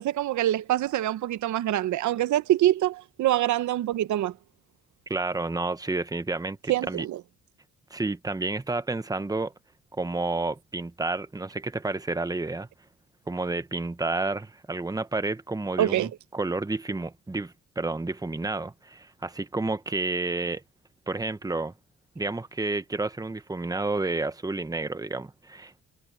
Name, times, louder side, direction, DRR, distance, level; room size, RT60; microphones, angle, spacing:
voice 1, 0.0-4.3 6.7-7.2 15.8-16.1, right 13 dB, 75° right, 0.9 m, -25 dB
voice 2, 5.1-7.1 7.9-9.5 10.0-12.7 13.3-20.6 21.1-21.7 22.1-25.8, right 3 dB, 10° right, 1.1 m, -30 dB
cardioid pair, 90°, 30 cm